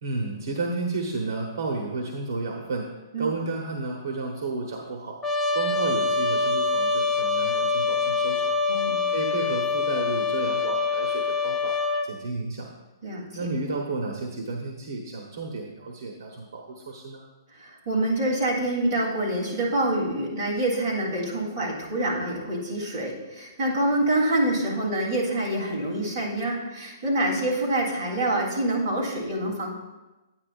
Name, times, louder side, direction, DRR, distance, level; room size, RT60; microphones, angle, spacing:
voice 1, 0.0-2.9 3.2-5.2 5.5-8.5 9.1-11.8 12.0-12.7 13.4-17.2, right 3 dB, 65° right, 1 dB, 1.1 m, -32 dB
Trumpet, 5.2-12.1, left 4 dB, 10° left, 0.3 m, -25 dB
voice 2, 8.7-9.0 13.0-13.2 17.6-29.7, right 1 dB, 30° right, -7 dB, 3.2 m, -26 dB
10.5 x 9.6 x 2.5 m, 1.1 s
hypercardioid pair, 170°, 2 cm